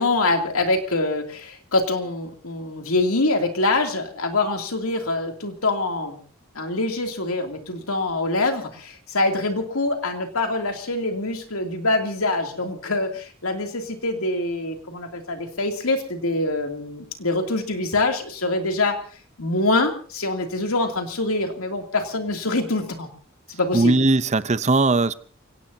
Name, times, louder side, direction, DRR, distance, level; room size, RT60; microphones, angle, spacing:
voice 1, 0.0-6.2 6.5-19.0 19.4-23.1 23.5-24.0, left 2 dB, 85° left, 2.8 m, -24 dB
voice 2, 23.7-25.1, right 3 dB, 35° right, 0.7 m, -19 dB
29.5 x 17.5 x 2.8 m
head